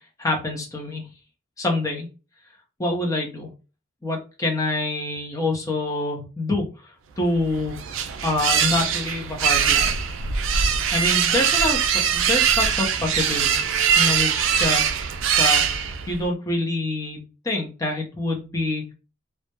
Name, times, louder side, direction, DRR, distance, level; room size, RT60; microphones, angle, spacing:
voice 1, 0.2-1.1 1.6-2.1 2.8-3.5 4.0-6.7 7.2-7.8 8.2-9.9 10.9-14.9 15.4-18.9, left 2 dB, 15° left, 0 dB, 0.5 m, -26 dB
sound 1, 7.3-16.2, right 7 dB, 70° right, 0.3 m, -22 dB
2.2 x 2.0 x 2.8 m, 0.33 s
head